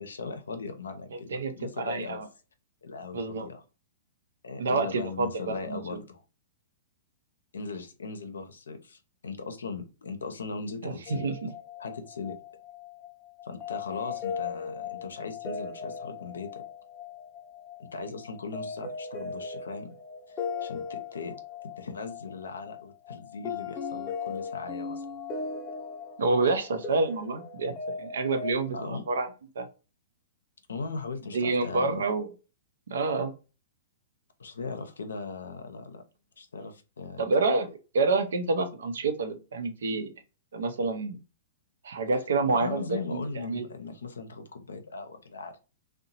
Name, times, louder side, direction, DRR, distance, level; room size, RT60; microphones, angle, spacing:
voice 1, 0.0-2.2 2.8-3.6 4.4-6.2 7.5-11.3 11.8-12.4 13.4-16.6 17.8-19.9 20.3-21.3 21.8-25.0 28.7-29.0 30.7-32.0 34.4-36.0 36.4-37.2 42.5-45.6, left 4 dB, 85° left, 7 dB, 0.5 m, -38 dB
voice 2, 1.3-2.2 3.1-3.5 4.6-6.0 10.8-11.3 26.2-28.8 29.1-29.3 29.6-29.7 31.3-32.3 32.9-33.3 37.2-37.7 37.9-40.1 40.5-41.2 41.8-43.6, right 3 dB, 75° right, 7 dB, 0.5 m, -28 dB
sound 1, 11.1-28.5, left 5 dB, 20° left, 0.7 m, -38 dB
2.7 x 2.1 x 2.8 m, 0.32 s
hypercardioid pair, 120°, 0 cm